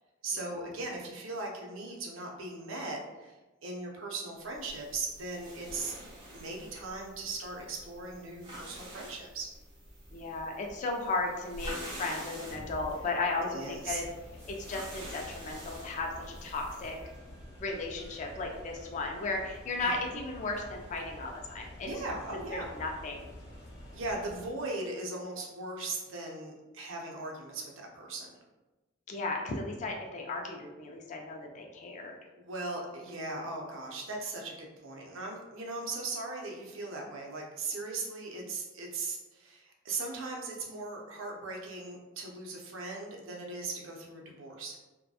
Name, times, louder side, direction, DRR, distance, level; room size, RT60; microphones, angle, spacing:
voice 1, 0.2-3.3 3.6-5.9 6.3-9.5 13.4-14.0 19.8-20.0 21.8-22.7 23.9-28.3 32.4-44.8, right 3 dB, 80° right, 0 dB, 0.5 m, -38 dB
sound 1, 4.5-17.1, right 1 dB, 25° right, 1.0 m, -47 dB
voice 2, 10.1-14.0 14.4-17.0 17.6-21.9 22.5-23.3 29.1-32.2, left 3 dB, 40° left, 1 dB, 0.3 m, -35 dB
sound 2, 13.8-24.5, equal, 60° left, 0.8 m, -49 dB
2.7 x 2.1 x 2.3 m, 1.1 s
head